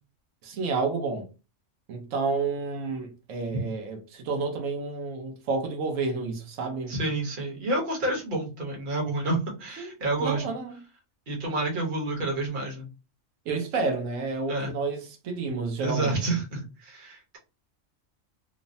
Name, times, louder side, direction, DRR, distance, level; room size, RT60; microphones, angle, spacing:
voice 1, 0.4-1.3 1.9-6.9 9.8-9.9 10.2-10.8 13.5-16.2, right 4 dB, 85° right, 1.1 m, -30 dB
voice 2, 6.9-10.5 11.3-12.8 14.5-14.7 15.8-17.4, right 2 dB, 45° right, 1.1 m, -29 dB
3.1 x 2.0 x 2.6 m
omnidirectional pair, 1.3 m